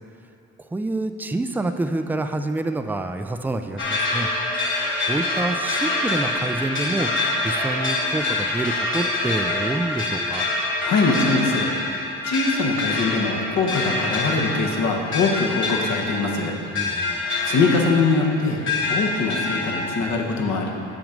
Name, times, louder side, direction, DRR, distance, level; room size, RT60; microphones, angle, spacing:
voice 1, 0.6-4.3 5.1-10.5 16.7-17.2, right 2 dB, 5° right, 7 dB, 0.3 m, -27 dB
sound 1, 3.8-20.0, left 2 dB, 40° left, 1.5 m, -26 dB
voice 2, 10.8-11.7 12.3-16.6 17.4-18.6 18.9-20.7, left 3 dB, 65° left, 0 dB, 1.2 m, -22 dB
7.2 x 6.2 x 5.1 m, 2.7 s
cardioid pair, 90°, 30 cm